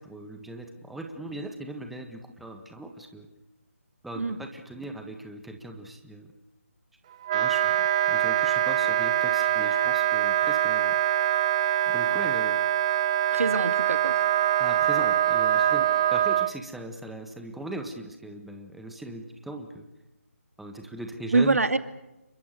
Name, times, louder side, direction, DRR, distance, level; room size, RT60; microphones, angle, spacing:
voice 1, 0.0-3.3 4.0-6.3 7.3-11.0 11.9-12.6 14.6-19.9 20.6-21.6, right 1 dB, ahead, 4 dB, 1.5 m, -39 dB
Wind instrument woodwind instrument, 7.2-16.5, right 11 dB, 25° right, 0.9 m, -24 dB
voice 2, 13.3-14.1 21.3-21.8, right 3 dB, 70° right, 10 dB, 2.5 m, -24 dB
29.0 x 23.5 x 6.7 m, 0.96 s
figure-of-eight pair, 155°, 8 cm